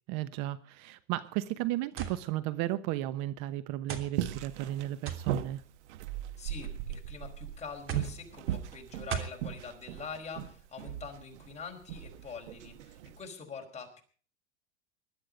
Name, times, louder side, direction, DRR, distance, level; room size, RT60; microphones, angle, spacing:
voice 1, 0.1-5.6, right 14 dB, 50° right, 14 dB, 1.1 m, -34 dB
sound 1, 2.0-2.2 3.1-3.2 3.9-4.1 5.1-5.3 6.3-6.7 7.9-8.2 9.1-9.4, right 8 dB, 35° right, 3.1 m, -36 dB
sound 2, 4.2-13.2, right 11 dB, 70° right, 1.5 m, -38 dB
voice 2, 6.4-14.0, left 5 dB, 20° left, 2 dB, 4.9 m, -44 dB
20.0 x 12.0 x 5.2 m, 0.43 s
hypercardioid pair, 115°, 36 cm